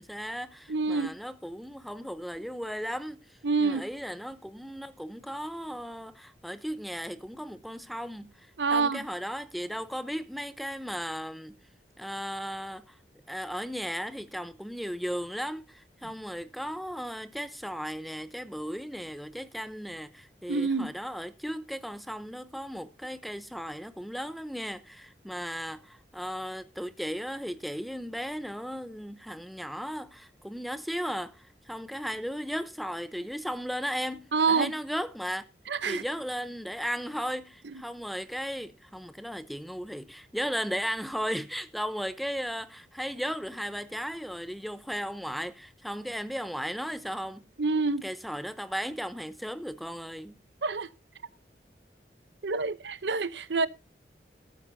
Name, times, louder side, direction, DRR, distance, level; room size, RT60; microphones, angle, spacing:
voice 1, 0.0-3.2 3.6-11.5 12.0-13.0 13.3-35.4 35.9-47.4 48.0-50.3, equal, ahead, 0.7 m, -36 dB
voice 2, 0.7-1.1 3.4-3.8 8.6-9.0 20.5-20.9 34.3-34.7 35.7-36.0 47.6-48.1 50.6-50.9 52.4-53.7, right 4 dB, 80° right, 0.8 m, -27 dB
14.5 x 13.0 x 2.7 m
head